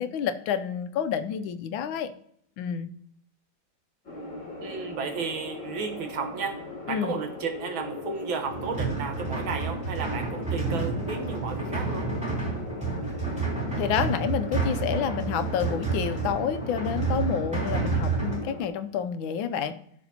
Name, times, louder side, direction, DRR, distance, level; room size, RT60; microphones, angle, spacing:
voice 1, 0.0-2.1 2.6-2.9 6.9-7.2 13.8-19.8, left 8 dB, 85° left, 11 dB, 1.4 m, -29 dB
sound 1, 4.1-18.7, left 2 dB, 45° left, 3.3 m, -39 dB
voice 2, 4.6-6.6 6.9-12.1, right 5 dB, 90° right, 5 dB, 2.0 m, -33 dB
sound 2, 8.5-18.4, right 4 dB, 5° right, 3.4 m, -30 dB
13.5 x 5.9 x 2.8 m, 0.66 s
omnidirectional pair, 2.1 m